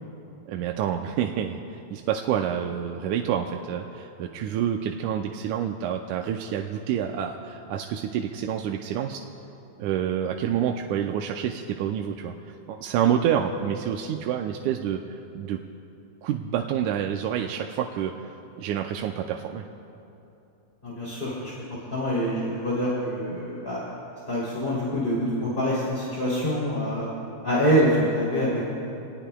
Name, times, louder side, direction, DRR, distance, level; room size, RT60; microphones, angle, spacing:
voice 1, 0.5-9.2 9.8-15.6 16.2-19.7, right 9 dB, 90° right, 2 dB, 2.0 m, -28 dB
voice 2, 20.8-21.5 21.9-23.8 24.3-27.1 27.4-28.6, equal, 15° left, -7 dB, 2.8 m, -25 dB
27.5 x 19.0 x 2.3 m, 2.9 s
omnidirectional pair, 3.4 m